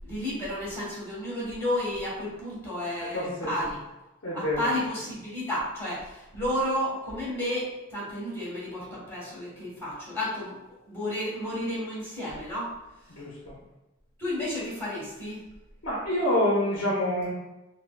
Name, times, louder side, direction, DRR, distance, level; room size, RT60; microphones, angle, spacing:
voice 1, 0.0-3.8 4.3-10.6 10.8-12.7 14.2-15.4, left 1 dB, 10° left, -8 dB, 1.4 m, -32 dB
voice 2, 3.0-3.7 4.2-4.7 13.1-13.5 15.8-17.3, left 1 dB, 80° left, -4 dB, 0.8 m, -27 dB
4.5 x 2.1 x 2.2 m, 1.0 s
head